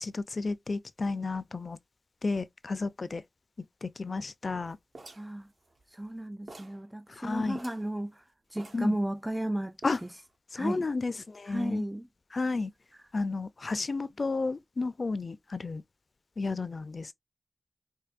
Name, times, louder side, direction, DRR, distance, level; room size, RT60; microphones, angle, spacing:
voice 1, 0.0-1.8 2.2-3.2 3.8-4.8 7.1-7.6 8.7-9.0 9.8-10.0 10.5-11.8 12.3-12.7 13.1-15.8 16.4-17.1, left 3 dB, 70° left, 0.4 m, -32 dB
sound 1, 4.9-6.2 6.5-6.9 7.1-7.2 7.5-7.9 8.6-9.4 9.8-10.3, right 2 dB, 85° right, 1.2 m, -49 dB
voice 2, 5.2-5.5 5.9-8.2 8.5-9.7 10.0-10.1 10.6-10.9 11.5-12.1, right 1 dB, 10° right, 0.4 m, -34 dB
4.6 x 2.6 x 2.5 m
cardioid pair, 50°, 0 cm